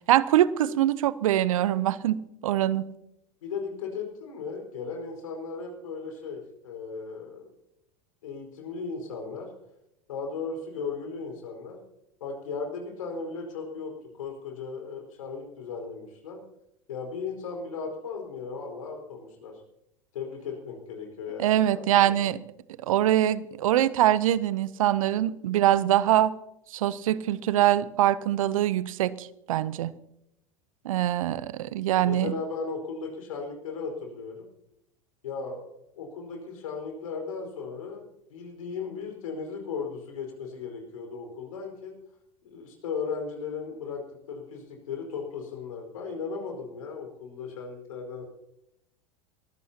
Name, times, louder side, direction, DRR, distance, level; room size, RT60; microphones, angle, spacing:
voice 1, 0.1-2.2 2.4-2.9 21.4-22.4 22.8-26.3 26.7-29.9 30.8-32.3, right 12 dB, 75° right, 18 dB, 0.7 m, -23 dB
voice 2, 3.4-7.5 8.2-9.5 10.1-11.8 12.2-13.9 14.2-16.4 16.9-19.5 20.1-22.2 32.0-34.4 35.2-35.6 36.0-41.9 42.4-44.0 44.3-48.2, left 5 dB, 75° left, 3 dB, 4.7 m, -36 dB
22.5 x 15.0 x 2.9 m, 0.81 s
hypercardioid pair, 90°, 18 cm